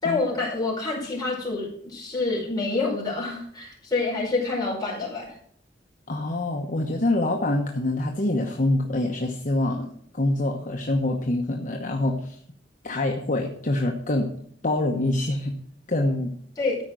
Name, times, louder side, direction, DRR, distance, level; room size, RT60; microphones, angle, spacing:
voice 1, 0.0-5.3 16.6-16.8, left 3 dB, 25° left, -4 dB, 5.1 m, -27 dB
voice 2, 6.1-9.9 10.1-12.4 12.8-14.3 14.6-15.6 15.9-16.3, left 2 dB, 45° left, 1 dB, 1.1 m, -25 dB
13.5 x 5.2 x 6.1 m, 0.63 s
head